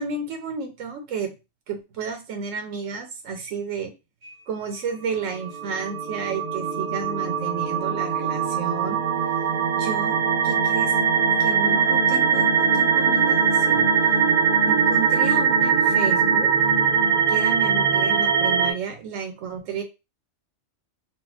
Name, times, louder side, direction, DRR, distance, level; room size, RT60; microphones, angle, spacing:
voice 1, 0.0-1.3 1.7-3.9 4.5-9.0 9.7-10.2 10.4-10.9 11.4-13.8 14.7-16.5 17.3-19.8, right 5 dB, 85° right, 6 dB, 1.0 m, -32 dB
sound 1, 5.5-18.7, right 6 dB, 55° right, 0.4 m, -21 dB
4.0 x 2.2 x 2.3 m, 0.26 s
omnidirectional pair, 1.3 m